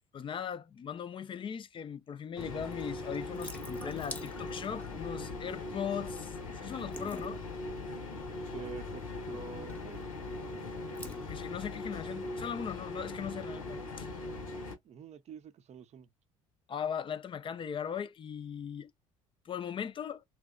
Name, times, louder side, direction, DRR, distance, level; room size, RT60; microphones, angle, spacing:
voice 1, 0.1-7.4 11.2-14.1 16.7-18.9 19.4-20.2, left 8 dB, 30° left, 0.4 m, -39 dB
sound 1, 2.4-14.7, left 2 dB, 90° left, 0.7 m, -40 dB
Water tap faucet / Sink (filling or washing) / Drip, 2.7-12.5, left 1 dB, 10° left, 0.8 m, -51 dB
voice 2, 8.5-10.1 14.8-16.1, right 8 dB, 40° right, 0.5 m, -47 dB
2.7 x 2.1 x 2.4 m
hypercardioid pair, 60°, 17 cm